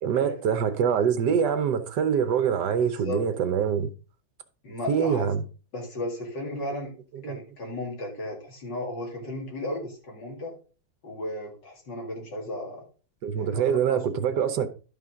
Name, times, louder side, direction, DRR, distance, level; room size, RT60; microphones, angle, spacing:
voice 1, 0.0-3.9 4.9-5.4 7.2-7.4 13.2-14.7, right 7 dB, 70° right, 1.4 m, -24 dB
voice 2, 2.8-3.2 4.6-5.3 5.7-6.9 7.2-10.5 11.0-12.8 13.4-14.2, left 1 dB, 70° left, 2.9 m, -35 dB
12.0 x 5.4 x 3.7 m
omnidirectional pair, 2.0 m